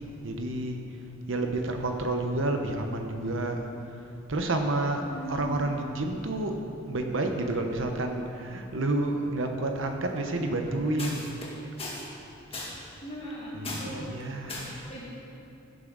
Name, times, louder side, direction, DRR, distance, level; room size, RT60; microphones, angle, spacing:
voice 1, 0.2-0.8 1.3-3.6 4.3-5.0 5.3-6.6 6.9-11.3 13.5-14.8, right 2 dB, 65° right, 4 dB, 0.9 m, -29 dB
voice 2, 5.1-5.7 11.0-11.5 11.8-12.1 12.5-12.8 13.0-14.2 14.5-15.1, left 1 dB, 30° left, -5 dB, 2.1 m, -38 dB
16.0 x 7.2 x 4.0 m, 2.7 s
head